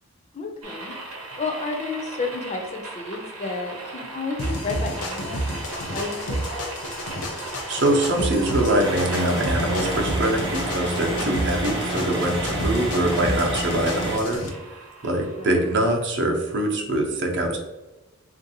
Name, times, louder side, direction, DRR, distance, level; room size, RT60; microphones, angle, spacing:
voice 1, 0.3-0.9 1.4-6.8 15.4-15.6, left 3 dB, 30° left, 3 dB, 0.4 m, -32 dB
sound 1, 0.6-15.8, right 2 dB, 85° right, 0.9 m, -37 dB
sound 2, 4.4-14.5, equal, 80° left, 0.6 m, -31 dB
voice 2, 7.3-14.4 15.0-17.6, right 1 dB, 55° right, 2 dB, 0.6 m, -24 dB
sound 3, 8.8-14.2, equal, 20° right, 0.7 m, -28 dB
3.4 x 2.5 x 2.7 m, 1.1 s
head